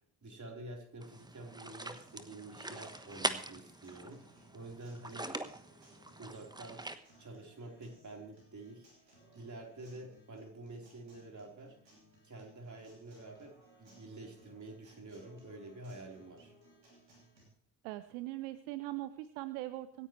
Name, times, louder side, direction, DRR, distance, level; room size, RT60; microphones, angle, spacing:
voice 1, 0.2-5.3 6.2-11.8 12.2-16.5, right 2 dB, 35° right, 1 dB, 4.1 m, -49 dB
sound 1, 1.0-7.0, right 1 dB, 10° right, 1.2 m, -42 dB
Acoustic guitar, 1.4-17.4, right 1 dB, 90° right, 3.0 m, -63 dB
voice 2, 17.8-20.1, right 16 dB, 70° right, 14 dB, 0.7 m, -41 dB
25.5 x 9.6 x 3.2 m, 0.65 s
figure-of-eight pair, 40°, 49 cm